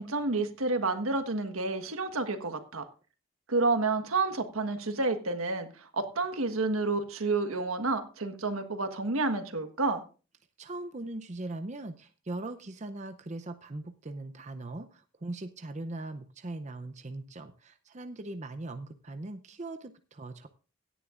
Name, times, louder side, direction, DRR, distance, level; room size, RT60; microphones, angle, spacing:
voice 1, 0.0-2.8 3.5-5.9 6.1-10.0, right 3 dB, 85° right, 7 dB, 1.5 m, -30 dB
voice 2, 10.6-20.5, right 2 dB, 35° right, 8 dB, 0.6 m, -40 dB
17.0 x 10.0 x 2.5 m, 0.35 s
head